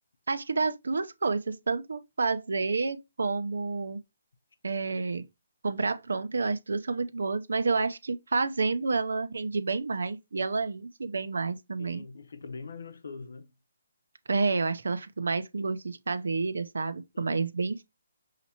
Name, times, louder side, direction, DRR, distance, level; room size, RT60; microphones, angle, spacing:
voice 1, 0.3-4.0 4.6-5.3 5.6-12.0 14.3-17.8, right 4 dB, 85° right, 0.6 m, -29 dB
voice 2, 11.8-13.6 17.1-17.4, left 4 dB, 70° left, 0.7 m, -43 dB
5.8 x 2.9 x 2.8 m
hypercardioid pair, 170°, 0 cm